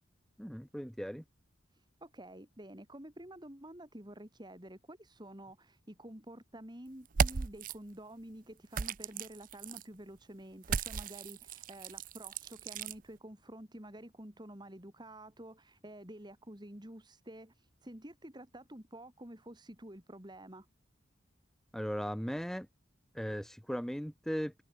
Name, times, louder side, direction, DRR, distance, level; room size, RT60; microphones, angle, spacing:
voice 1, 0.4-1.2 21.7-22.7 23.1-24.6, equal, ahead, 1.3 m, -37 dB
voice 2, 1.7-20.7, right 1 dB, 20° right, 2.6 m, -50 dB
sound 1, 7.1-7.7 8.7-9.8 10.6-13.0, right 5 dB, 45° right, 0.5 m, -35 dB
head